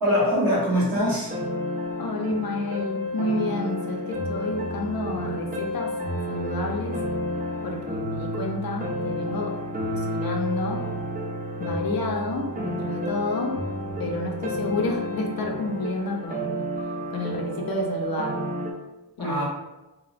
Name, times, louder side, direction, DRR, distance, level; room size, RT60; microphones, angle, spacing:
voice 1, 0.0-1.3 19.2-19.4, equal, 55° right, -8 dB, 1.4 m, -23 dB
sound 1, 1.0-18.7, equal, 25° right, 0.4 m, -31 dB
voice 2, 2.0-5.9 6.3-7.0 7.6-9.6 9.9-10.9 11.6-13.6 14.0-16.6 17.1-18.5 19.2-19.4, left 2 dB, 60° left, 1 dB, 0.5 m, -30 dB
2.8 x 2.0 x 2.5 m, 1.0 s
wide cardioid pair, 75°, 40 cm